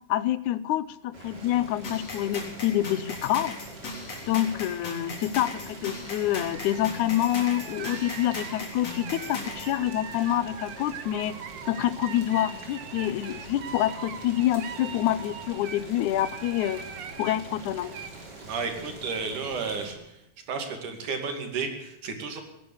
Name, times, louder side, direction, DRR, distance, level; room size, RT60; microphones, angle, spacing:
voice 1, 0.1-3.6 4.3-11.4 11.7-16.8 17.2-17.9, left 13 dB, 80° left, 17 dB, 2.2 m, -27 dB
Boiling, 1.1-19.9, right 2 dB, 35° right, 3.8 m, -44 dB
sound 1, 1.8-9.7, left 3 dB, 55° left, 4.7 m, -38 dB
sound 2, 6.3-15.8 16.2-17.4 17.8-18.1, right 8 dB, 60° right, 1.2 m, -42 dB
voice 2, 18.4-20.2 20.5-22.4, right 5 dB, 85° right, 5 dB, 4.0 m, -32 dB
17.0 x 10.5 x 8.0 m, 0.86 s
omnidirectional pair, 3.5 m